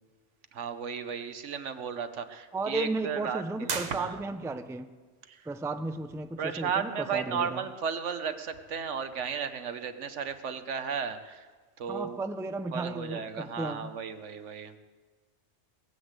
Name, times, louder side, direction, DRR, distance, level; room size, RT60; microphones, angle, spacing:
voice 1, 0.5-4.2 5.3-5.4 6.4-11.5 11.8-12.2 12.7-14.7, right 6 dB, 85° right, 10 dB, 1.3 m, -34 dB
voice 2, 2.5-4.9 5.5-7.6 11.9-13.9, right 2 dB, 5° right, 9 dB, 0.4 m, -34 dB
sound 1, 3.6-4.7, right 4 dB, 40° right, 1.0 m, -36 dB
19.5 x 8.1 x 8.1 m, 1.4 s
omnidirectional pair, 1.2 m